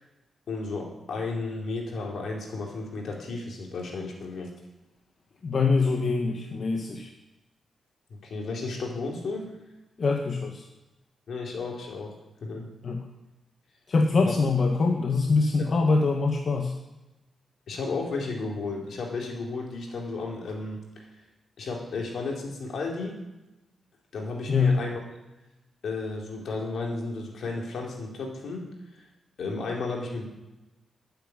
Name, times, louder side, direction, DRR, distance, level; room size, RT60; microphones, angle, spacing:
voice 1, 0.5-4.5 8.1-9.5 11.3-12.1 12.4-12.7 14.2-14.4 17.7-21.0 21.6-23.2 24.1-25.0 25.8-28.7 29.4-30.3, left 3 dB, 65° left, 0 dB, 4.2 m, -33 dB
voice 2, 5.4-7.1 10.0-10.6 12.8-13.0 13.9-16.7 24.5-24.8, left 4 dB, 40° left, 2 dB, 1.5 m, -24 dB
13.5 x 9.0 x 10.0 m, 1.0 s
wide cardioid pair, 145°, 0 cm